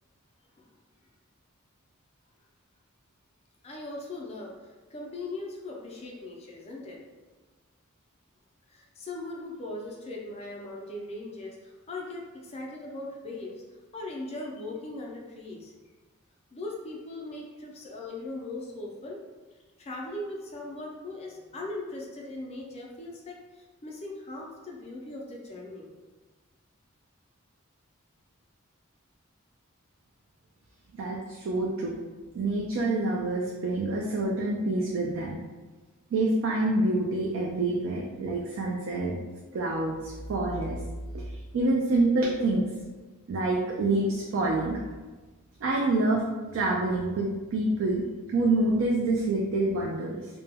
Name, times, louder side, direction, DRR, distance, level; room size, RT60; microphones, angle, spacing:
voice 1, 3.6-7.0 8.7-13.6 13.9-15.7 16.5-19.2 19.8-25.9, left 2 dB, 30° left, -2 dB, 0.3 m, -39 dB
voice 2, 30.9-31.9 32.3-35.4 36.1-39.2 39.5-40.8 41.5-42.7 43.3-44.8 45.6-46.2 46.5-48.0 48.3-50.3, right 2 dB, 65° right, -2 dB, 0.3 m, -27 dB
2.1 x 2.0 x 3.3 m, 1.3 s
head